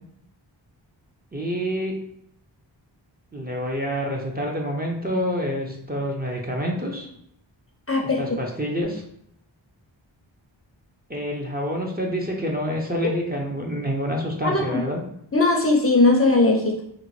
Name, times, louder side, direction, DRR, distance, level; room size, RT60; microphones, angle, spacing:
voice 1, 1.3-1.9 3.3-7.1 8.0-9.0 11.1-15.0, equal, 20° right, -1 dB, 0.6 m, -27 dB
voice 2, 7.9-8.2 14.4-14.8 15.3-16.8, left 2 dB, 30° left, 0 dB, 0.5 m, -19 dB
3.8 x 2.1 x 3.0 m, 0.74 s
wide cardioid pair, 70°, 47 cm